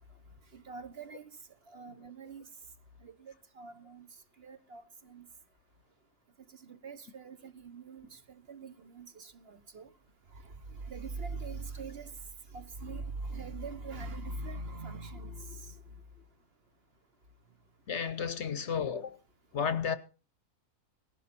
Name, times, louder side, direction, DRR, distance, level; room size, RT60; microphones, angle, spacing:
voice 1, 0.5-1.3 1.7-2.4 3.0-4.1 4.4-5.3 6.6-9.9 10.3-12.1 12.5-15.8, right 3 dB, 50° right, 1.2 m, -43 dB
voice 2, 17.9-19.2 19.5-20.0, left 7 dB, 55° left, 1.0 m, -32 dB
18.5 x 11.0 x 4.3 m
omnidirectional pair, 1.5 m